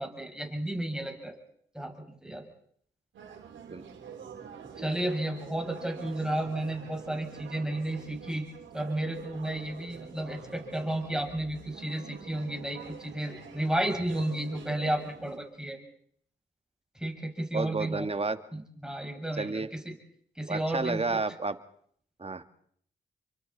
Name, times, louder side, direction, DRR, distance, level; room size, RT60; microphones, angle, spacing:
voice 1, 0.0-1.4 1.7-2.5 4.8-8.5 8.7-15.8 17.0-18.1 18.5-20.0 20.4-21.2, right 1 dB, 5° right, 2 dB, 6.0 m, -33 dB
sound 1, 3.1-15.4, right 7 dB, 85° right, 3.2 m, -46 dB
voice 2, 17.5-18.4 19.4-19.7 20.5-21.6 22.2-22.4, right 3 dB, 30° right, 10 dB, 1.7 m, -30 dB
29.5 x 24.0 x 4.1 m, 0.64 s
supercardioid pair, 45°, 19 cm